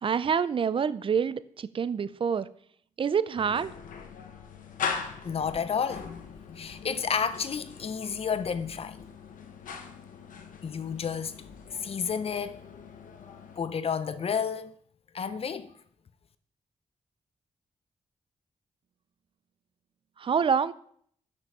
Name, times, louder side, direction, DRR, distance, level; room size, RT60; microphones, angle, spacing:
voice 1, 0.0-2.5 3.0-3.7 20.2-20.7, right 6 dB, 40° right, 0.4 m, -27 dB
sound 1, 3.4-13.6, left 6 dB, 90° left, 0.8 m, -41 dB
voice 2, 5.2-6.1 6.6-9.0 10.6-11.4 11.7-12.6 13.6-14.7 15.1-15.7, left 6 dB, 45° left, 0.5 m, -31 dB
6.1 x 5.3 x 5.4 m
wide cardioid pair, 105°, 13 cm